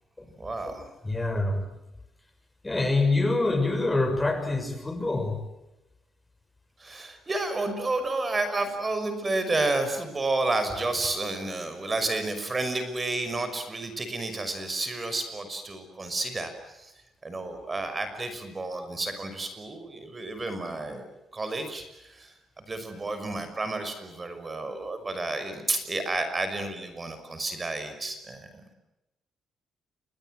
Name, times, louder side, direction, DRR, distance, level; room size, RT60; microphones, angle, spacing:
voice 1, 0.4-0.9 6.8-16.9 17.2-21.1 21.3-28.6, right 2 dB, 25° right, 9 dB, 6.0 m, -31 dB
voice 2, 1.0-1.6 2.6-5.4, left 2 dB, 15° left, 7 dB, 6.6 m, -25 dB
29.5 x 24.5 x 7.9 m, 0.95 s
cardioid pair, 90°, 0 cm